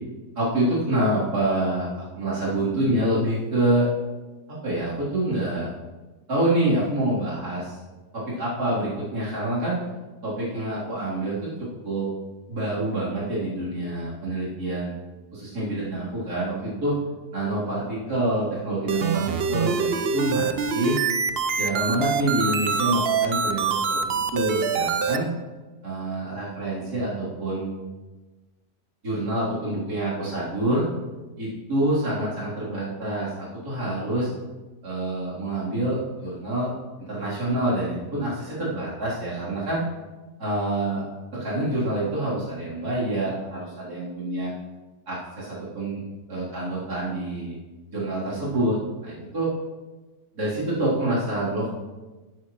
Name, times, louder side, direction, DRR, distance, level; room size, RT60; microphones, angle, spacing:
voice 1, 0.4-3.9 4.6-5.7 6.3-7.8 8.1-9.8 10.2-12.1 12.5-14.9 15.3-16.9 17.3-21.0 21.6-25.3 25.8-27.7 29.0-30.9 31.4-34.3 34.8-36.7 37.0-39.8 40.4-41.0 41.3-44.5 45.1-46.0 46.3-47.6 47.9-49.5 50.4-51.7, right 1 dB, 75° right, -9 dB, 4.0 m, -26 dB
sound 1, 18.9-25.2, right 6 dB, 50° right, 0.7 m, -24 dB
17.0 x 8.5 x 3.1 m, 1.2 s
omnidirectional pair, 1.7 m